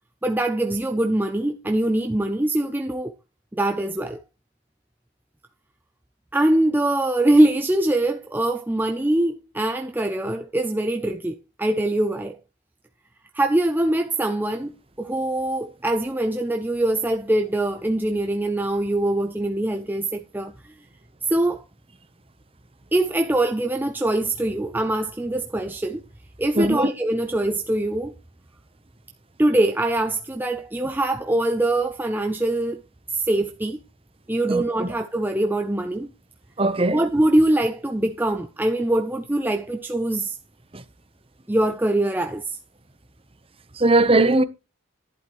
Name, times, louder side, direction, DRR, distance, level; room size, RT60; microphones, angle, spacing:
voice 1, 0.2-3.2 3.5-4.2 6.3-12.4 13.3-20.5 21.3-21.6 22.9-26.0 26.4-28.1 29.4-32.8 33.1-33.8 34.3-36.1 36.9-40.4 41.5-42.6, right 1 dB, 10° right, 0.5 m, -23 dB
voice 2, 26.6-26.9 34.5-34.9 36.6-37.0 40.7-40.8 43.8-44.4, right 2 dB, 25° right, 0.9 m, -19 dB
11.5 x 11.0 x 3.1 m
head